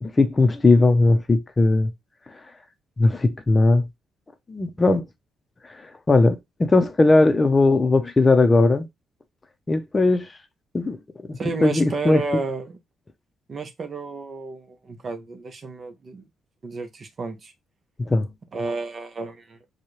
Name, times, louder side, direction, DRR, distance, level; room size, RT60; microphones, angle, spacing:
voice 1, 0.0-1.9 3.0-3.9 4.5-5.0 6.1-8.9 9.7-10.3 10.7-11.0 11.3-12.2 18.0-18.3, left 2 dB, 25° left, 0.7 m, -18 dB
voice 2, 11.4-12.8 13.5-16.2 16.6-17.5 18.5-19.6, right 4 dB, 45° right, 0.9 m, -31 dB
4.4 x 2.3 x 3.1 m
cardioid pair, 90°, 0 cm